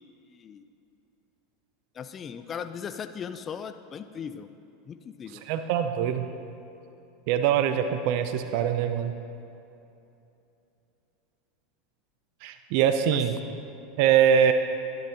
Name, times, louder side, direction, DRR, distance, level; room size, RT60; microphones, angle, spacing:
voice 1, 0.3-0.6 1.9-4.5 4.9-5.4 13.1-13.2, left 7 dB, 30° left, 10 dB, 0.3 m, -38 dB
voice 2, 5.4-6.3 7.3-9.1 12.4-13.4 14.0-14.5, right 9 dB, 65° right, 8 dB, 0.5 m, -23 dB
11.0 x 10.5 x 2.9 m, 2.8 s
supercardioid pair, 110°, 0 cm